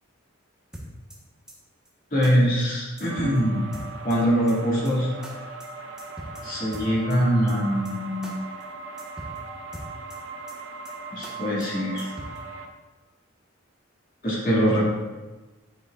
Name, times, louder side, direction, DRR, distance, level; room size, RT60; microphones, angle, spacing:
sound 1, 0.7-1.2 1.5-1.6 1.8-1.9 2.2-2.3 2.6-2.7 3.0-3.4 3.7-4.2 4.5-4.6 4.8-4.9 5.2-5.3 5.6-5.7 6.0-6.4 6.7-7.2 7.5-7.6 7.8-7.9 8.2-8.3 8.6-8.7 9.0-9.4 9.7-10.2 10.5-10.6 10.8-10.9 11.2-11.3 11.6-11.7 12.0-12.4, right 1 dB, 5° right, 1.1 m, -40 dB
voice 1, 2.1-3.6 4.0-5.1 6.4-8.4 11.1-12.1 14.2-14.8, equal, 40° left, -5 dB, 2.1 m, -23 dB
sound 2, 3.1-12.7, right 3 dB, 70° right, 0.7 m, -39 dB
9.5 x 6.2 x 2.4 m, 1.2 s
head